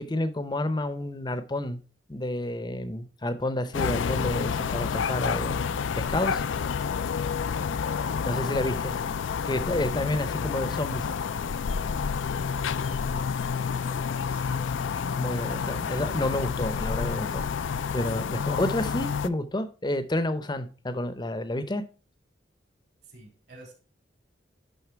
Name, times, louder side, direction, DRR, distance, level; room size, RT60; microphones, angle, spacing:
voice 1, 0.0-1.8 2.1-5.6 6.0-6.4 8.2-8.9 9.4-11.1 14.5-14.6 15.2-21.8, left 1 dB, 25° left, 12 dB, 0.7 m, -30 dB
sound 1, 3.7-19.3, left 6 dB, 90° left, 0.4 m, -29 dB
voice 2, 13.8-14.7 23.1-23.7, right 1 dB, 60° right, 0 dB, 3.6 m, -51 dB
11.0 x 4.0 x 4.5 m, 0.37 s
head